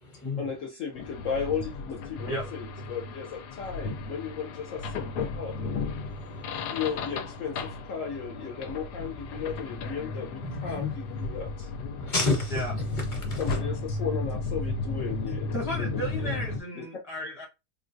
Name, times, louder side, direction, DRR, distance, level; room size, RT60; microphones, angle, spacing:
voice 1, 0.4-5.7 6.7-11.7 13.4-16.4 16.7-16.9, left 6 dB, 65° left, 0.9 m, -35 dB
sound 1, 1.0-16.6, left 3 dB, 80° left, 1.1 m, -34 dB
voice 2, 6.1-6.8 10.4-10.9 12.0-12.6 13.1-13.4, left 3 dB, 35° left, 1.0 m, -31 dB
voice 3, 15.2-17.4, equal, 5° right, 0.4 m, -34 dB
3.7 x 2.3 x 2.5 m
omnidirectional pair, 1.7 m